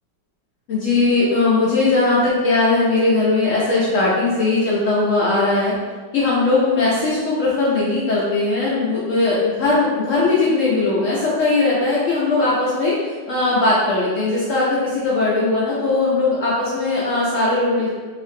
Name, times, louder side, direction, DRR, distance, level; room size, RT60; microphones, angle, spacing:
voice 1, 0.7-5.7 6.1-12.9 13.3-17.9, left 3 dB, 70° left, -8 dB, 0.7 m, -19 dB
2.9 x 2.5 x 2.6 m, 1.4 s
omnidirectional pair, 2.0 m